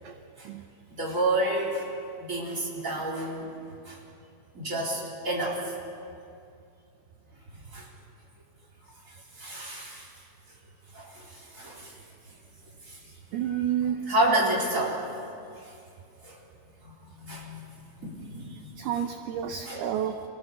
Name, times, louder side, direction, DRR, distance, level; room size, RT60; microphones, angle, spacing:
voice 1, 0.9-1.9 2.2-3.5 3.9-4.0 4.5-5.7 7.7-7.9 9.1-10.1 10.9-11.9 12.8-13.0 13.5-13.6 14.1-15.1 15.6-15.7 16.2-16.4 16.8-16.9 17.2-18.6 18.9-19.0 19.6-19.9, right 1 dB, 20° right, -4 dB, 3.7 m, -30 dB
voice 2, 13.3-14.0 18.8-20.2, right 10 dB, 75° right, 5 dB, 2.4 m, -29 dB
27.5 x 17.0 x 6.7 m, 2.5 s
omnidirectional pair, 5.3 m